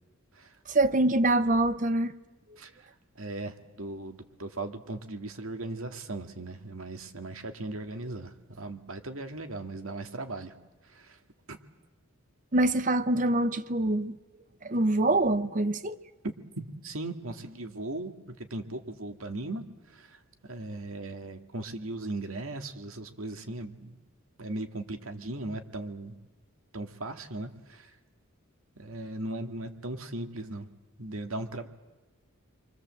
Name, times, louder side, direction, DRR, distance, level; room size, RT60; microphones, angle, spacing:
voice 1, 0.7-2.1 12.5-14.2 14.6-16.0, right 2 dB, 35° right, 0.8 m, -25 dB
voice 2, 2.6-10.6 10.8-11.2 11.5-11.6 16.5-24.0 24.4-26.2 26.7-28.0 28.8-30.7 31.0-31.7, right 2 dB, 70° right, 2.2 m, -38 dB
29.0 x 24.0 x 7.8 m
head